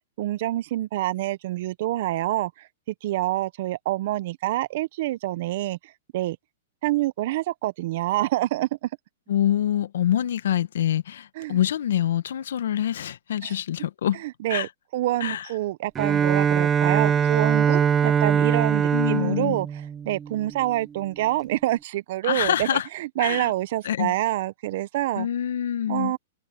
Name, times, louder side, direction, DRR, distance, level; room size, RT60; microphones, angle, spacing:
voice 1, 0.2-6.4 6.8-8.9 11.4-11.6 13.4-13.5 14.1-19.7 20.0-25.3 25.9-26.2, right 16 dB, 55° right, 1.2 m, -27 dB
voice 2, 9.3-14.2 14.5-14.7 15.2-15.5 18.9-19.6 22.2-22.9 23.2-23.5 23.8-24.1 25.2-26.1, left 10 dB, 75° left, 1.5 m, -25 dB
Bowed string instrument, 15.9-20.7, right 7 dB, 20° right, 1.3 m, -22 dB
hypercardioid pair, 130°, 0 cm